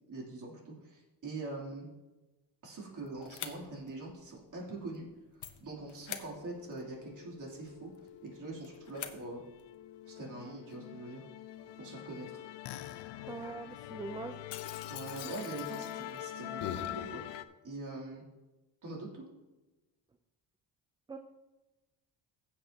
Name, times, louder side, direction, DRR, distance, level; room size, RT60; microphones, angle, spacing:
voice 1, 0.1-1.9 2.6-5.1 5.6-7.9 8.2-9.4 10.1-11.2 11.8-12.3 14.9-18.2 18.8-19.2, right 2 dB, 45° right, -2 dB, 3.1 m, -43 dB
sound 1, 3.0-9.7, left 8 dB, 45° left, 0.9 m, -49 dB
Musical instrument, 6.2-17.4, left 12 dB, 75° left, 0.6 m, -44 dB
voice 2, 13.3-14.4 21.1-21.2, right 4 dB, 10° right, 8 dB, 0.3 m, -42 dB
15.5 x 7.5 x 2.9 m, 1.1 s
cardioid pair, 125°, 42 cm